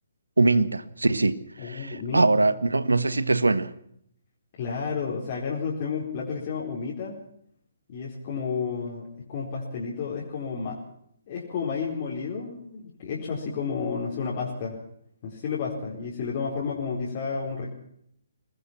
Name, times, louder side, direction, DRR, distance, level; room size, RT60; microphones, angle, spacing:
voice 1, 0.4-1.4 1.6-3.7, right 3 dB, 75° right, 1.5 m, -22 dB
voice 2, 1.6-2.3 4.6-7.2 7.9-10.8 11.3-14.8 15.2-17.8, left 5 dB, 35° left, 4.6 m, -31 dB
23.0 x 20.0 x 6.0 m
figure-of-eight pair, 135°, 0 cm